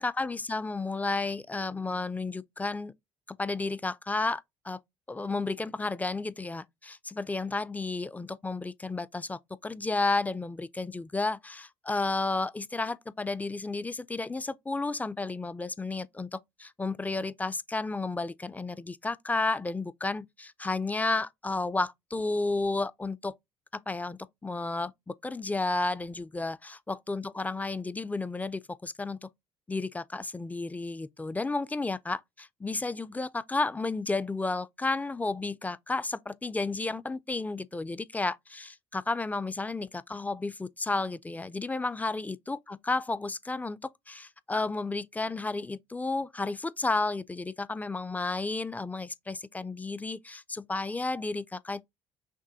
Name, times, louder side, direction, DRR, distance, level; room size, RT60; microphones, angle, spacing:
voice 1, 0.0-2.9 3.3-4.8 5.1-23.3 23.9-29.3 29.7-51.9, left 3 dB, 10° left, 0.3 m, -32 dB
6.0 x 2.1 x 2.7 m
hypercardioid pair, 65°, 13 cm